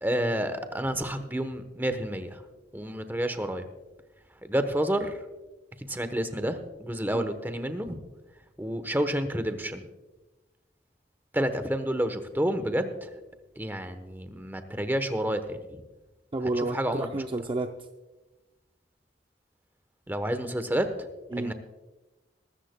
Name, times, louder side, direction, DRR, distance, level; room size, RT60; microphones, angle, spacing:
voice 1, 0.0-2.4 2.7-3.6 4.4-5.1 5.9-8.0 8.6-9.8 11.3-13.1 13.6-15.8 16.6-17.1 20.1-20.9 21.4-21.5, right 1 dB, 10° right, 9 dB, 0.9 m, -29 dB
voice 2, 16.3-17.7 21.3-21.5, right 2 dB, 30° right, 5 dB, 0.5 m, -30 dB
22.0 x 13.5 x 2.2 m, 1.1 s
head